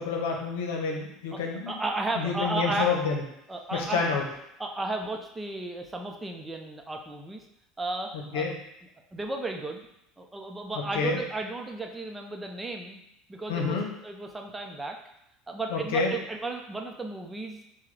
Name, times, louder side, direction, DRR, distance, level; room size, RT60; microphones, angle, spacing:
voice 1, 0.0-1.8 2.2-3.2 3.7-4.2 8.3-8.5 10.9-11.2 13.5-13.9 15.7-16.1, left 5 dB, 90° left, 1 dB, 0.9 m, -28 dB
voice 2, 1.7-3.0 3.5-4.2 4.6-7.4 7.8-8.4 9.1-9.9 10.2-13.0 13.3-13.8 14.0-15.0 15.5-17.6, right 2 dB, 15° right, 2 dB, 0.7 m, -34 dB
6.7 x 2.3 x 3.3 m, 0.81 s
supercardioid pair, 110°, 0 cm